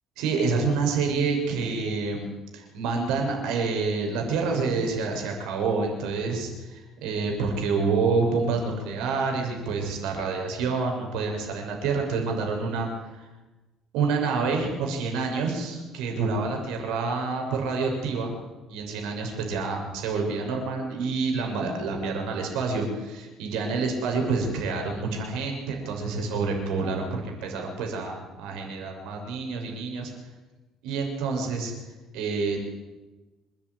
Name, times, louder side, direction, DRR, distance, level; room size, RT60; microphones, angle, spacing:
voice 1, 0.2-13.3 13.9-18.4 18.7-30.1 30.8-31.7 32.1-32.6, right 4 dB, 85° right, 2 dB, 6.4 m, -28 dB
26.5 x 11.0 x 9.7 m, 1.2 s
cardioid pair, 135°, 0 cm